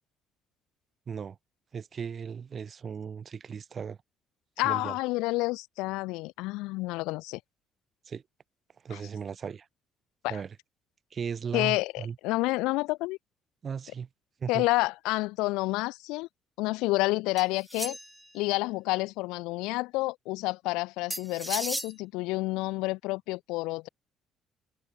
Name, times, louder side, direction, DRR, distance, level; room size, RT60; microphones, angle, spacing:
voice 1, 1.1-1.4 1.7-4.0 4.6-5.0 8.0-8.2 8.8-9.7 10.3-10.6 11.1-12.2 13.6-14.1 14.4-14.7, right 6 dB, 45° right, 3.2 m, -36 dB
voice 2, 4.6-7.4 8.9-9.0 10.2-10.4 11.5-13.2 14.5-16.3 16.6-18.0 18.3-23.9, left 22 dB, 75° left, 1.5 m, -29 dB
sound 1, 17.4-18.3 21.1-21.9, right 1 dB, 5° right, 6.0 m, -35 dB
hypercardioid pair, 50°, 0 cm